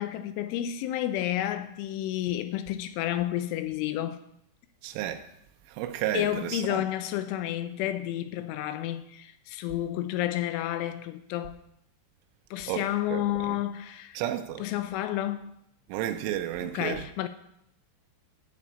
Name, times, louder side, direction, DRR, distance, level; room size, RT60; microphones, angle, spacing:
voice 1, 0.0-4.2 6.1-11.6 12.5-14.2 14.6-15.5 16.6-17.3, left 13 dB, 85° left, 2.9 m, -31 dB
voice 2, 4.8-5.3 5.7-6.8 12.7-13.6 14.1-14.6 15.9-17.1, right 12 dB, 80° right, 3.1 m, -32 dB
11.0 x 5.3 x 8.4 m
omnidirectional pair, 5.8 m